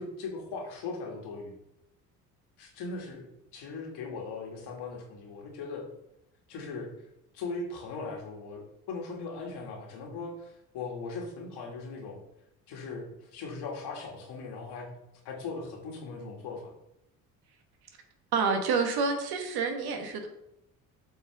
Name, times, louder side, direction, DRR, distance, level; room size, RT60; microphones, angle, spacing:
voice 1, 0.0-1.6 2.6-5.8 6.5-6.9 7.3-12.2 12.7-14.9 15.2-16.7, left 4 dB, 60° left, 0 dB, 2.3 m, -39 dB
voice 2, 18.3-20.3, right 4 dB, 55° right, 5 dB, 1.5 m, -28 dB
8.0 x 4.8 x 3.5 m, 0.83 s
hypercardioid pair, 60°, 46 cm